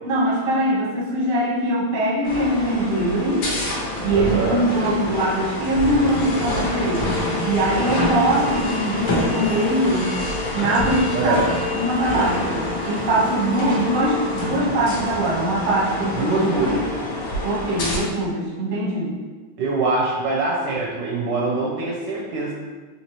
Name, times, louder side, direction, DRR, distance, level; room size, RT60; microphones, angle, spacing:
voice 1, 0.0-3.5 4.0-7.2 7.4-10.1 10.5-11.4 11.7-16.8 17.4-19.1, right 1 dB, 45° right, -6 dB, 0.6 m, -22 dB
sound 1, 2.2-18.0, left 1 dB, 70° left, 1.4 m, -26 dB
voice 2, 4.1-4.6 11.1-11.5 16.1-16.8 19.6-22.5, right 3 dB, 75° right, -4 dB, 1.1 m, -23 dB
4.2 x 3.0 x 2.9 m, 1.4 s
omnidirectional pair, 2.3 m